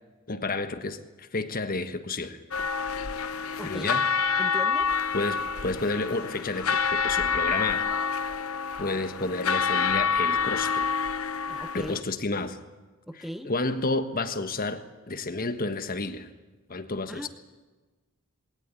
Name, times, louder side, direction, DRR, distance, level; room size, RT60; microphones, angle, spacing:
voice 1, 0.3-2.4 3.6-4.0 5.1-7.9 8.8-10.9 11.7-12.6 13.4-16.3 16.7-17.3, left 3 dB, 45° left, 9 dB, 1.4 m, -31 dB
sound 1, 2.5-12.0, left 6 dB, 85° left, 0.9 m, -27 dB
voice 2, 3.6-3.9 4.4-4.9 11.5-12.0 13.1-13.5 17.1-17.3, equal, ahead, 9 dB, 0.8 m, -38 dB
21.0 x 18.0 x 9.8 m, 1.2 s
head